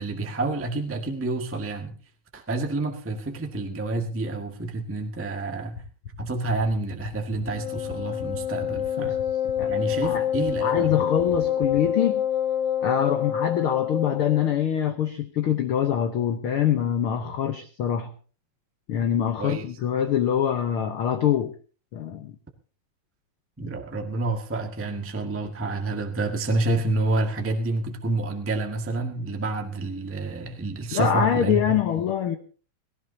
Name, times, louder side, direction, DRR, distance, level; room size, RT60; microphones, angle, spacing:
voice 1, 0.0-1.9 2.3-5.8 6.2-9.2 9.7-10.9 19.0-19.1 19.4-19.6 23.6-32.0, right 2 dB, 10° right, 4 dB, 0.7 m, -28 dB
sound 1, 5.7-11.8, left 6 dB, 50° left, 3.5 m, -38 dB
Wind instrument woodwind instrument, 7.4-14.5, left 9 dB, 30° left, 5.0 m, -27 dB
voice 2, 10.6-12.3 12.8-18.1 18.9-21.5 21.9-22.3 30.9-32.4, left 9 dB, 75° left, 7 dB, 1.2 m, -24 dB
18.5 x 17.5 x 2.8 m, 0.38 s
omnidirectional pair, 3.8 m